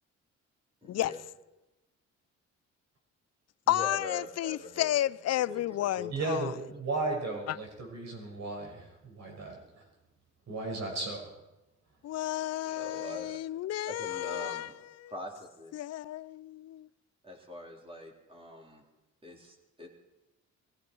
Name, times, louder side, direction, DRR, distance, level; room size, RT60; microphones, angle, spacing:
voice 1, 0.8-1.2 3.7-4.9 5.3-6.1 12.6-13.4 13.9-14.7 15.1-15.7 17.2-18.8 19.2-19.9, left 1 dB, 20° right, 3.9 m, -43 dB
voice 2, 3.7-6.5 7.5-7.6 12.0-14.7 15.0-15.1 15.7-16.9, left 13 dB, 55° left, 0.5 m, -32 dB
voice 3, 6.1-9.8 10.5-11.2, right 2 dB, 60° right, 5.9 m, -35 dB
20.5 x 15.0 x 4.6 m
cardioid pair, 90°, 30 cm